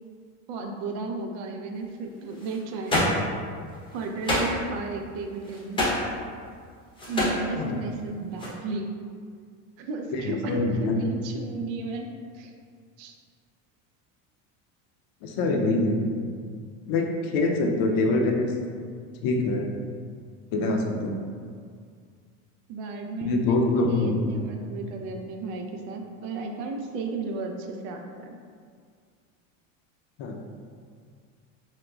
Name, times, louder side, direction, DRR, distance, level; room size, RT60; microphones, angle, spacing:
voice 1, 0.5-3.0 3.9-5.9 7.1-8.9 9.8-12.1 12.3-12.5 13.0-13.1 22.7-28.3, right 3 dB, 65° right, 3 dB, 0.5 m, -34 dB
sound 1, 2.3-2.6 2.9-3.2 3.7-4.5 5.3-6.1 6.9-7.4 8.4-8.5, left 1 dB, 15° left, 0.7 m, -26 dB
voice 2, 10.1-11.0 15.2-16.1 16.9-18.8 19.2-19.7 20.5-21.2 23.2-24.4 30.2-30.4, left 2 dB, 55° left, 2 dB, 0.5 m, -25 dB
3.7 x 2.1 x 2.2 m, 2.1 s
supercardioid pair, 110°, 40 cm